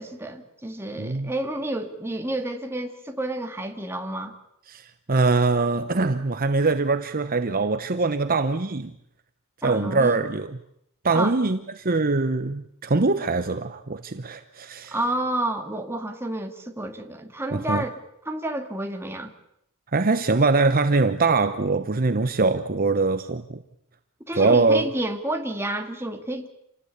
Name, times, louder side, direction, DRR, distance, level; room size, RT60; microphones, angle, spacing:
voice 1, 0.0-4.3 9.6-10.2 11.1-11.4 14.9-17.9 18.3-19.3 24.3-26.5, right 1 dB, 10° right, 2.3 m, -30 dB
voice 2, 1.0-1.3 4.7-8.9 9.6-10.6 11.0-15.0 17.5-17.8 19.9-23.6 24.3-24.9, right 3 dB, 40° right, 0.9 m, -23 dB
28.0 x 18.5 x 8.5 m
head